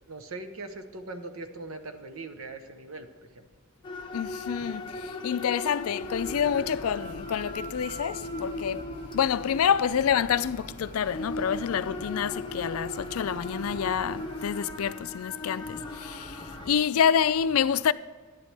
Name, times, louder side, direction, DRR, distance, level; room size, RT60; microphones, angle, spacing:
voice 1, 0.1-3.1 3.3-3.5, right 2 dB, 70° right, 1.0 m, -40 dB
sound 1, 3.8-16.7, left 2 dB, 20° left, 0.9 m, -38 dB
voice 2, 4.1-8.9 9.1-17.9, left 8 dB, 75° left, 0.4 m, -27 dB
sound 2, 6.0-14.4, equal, 10° right, 2.7 m, -46 dB
11.0 x 10.5 x 3.3 m
head